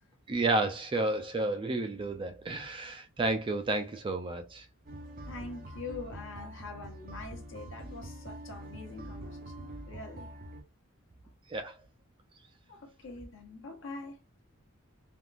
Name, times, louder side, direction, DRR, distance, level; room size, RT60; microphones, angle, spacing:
voice 1, 0.3-4.7 11.5-11.8, right 2 dB, 25° right, 0.3 m, -31 dB
sound 1, 4.9-10.6, right 1 dB, 40° right, 0.7 m, -45 dB
voice 2, 5.3-10.3 12.7-14.2, left 3 dB, 60° left, 1.0 m, -44 dB
3.5 x 2.4 x 2.4 m
head